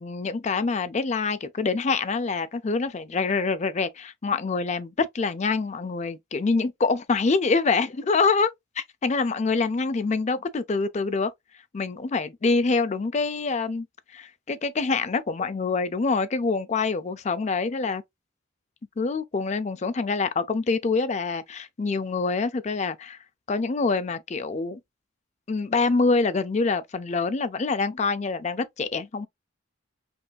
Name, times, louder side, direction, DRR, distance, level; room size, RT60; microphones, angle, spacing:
voice 1, 0.0-8.5 8.8-11.3 11.7-13.9 14.1-18.0 19.0-23.2 23.5-24.8 25.5-29.3, left 4 dB, 35° left, 0.4 m, -25 dB
5.3 x 2.5 x 2.3 m
head